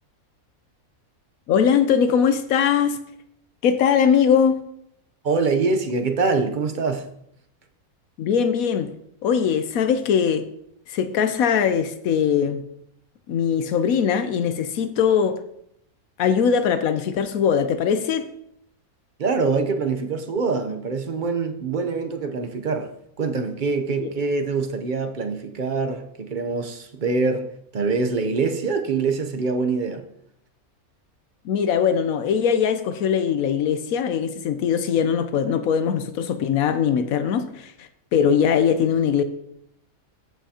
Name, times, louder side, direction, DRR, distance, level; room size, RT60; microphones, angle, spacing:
voice 1, 1.5-3.0 3.6-4.6 8.2-8.9 9.2-10.4 10.9-12.6 13.3-15.4 16.2-18.3 24.0-24.1 31.4-39.2, left 7 dB, 75° left, 1.0 m, -21 dB
voice 2, 5.2-7.1 19.2-30.1, right 4 dB, 45° right, 0.7 m, -24 dB
14.5 x 5.7 x 2.8 m
omnidirectional pair, 1.5 m